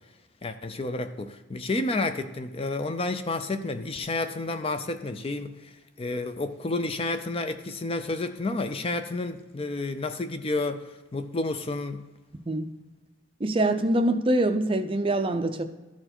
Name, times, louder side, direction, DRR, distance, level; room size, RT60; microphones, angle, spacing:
voice 1, 0.4-5.7 6.0-12.1, left 2 dB, 25° left, 0.4 m, -30 dB
voice 2, 13.4-15.6, right 1 dB, 25° right, 0.5 m, -24 dB
13.0 x 4.6 x 4.3 m
head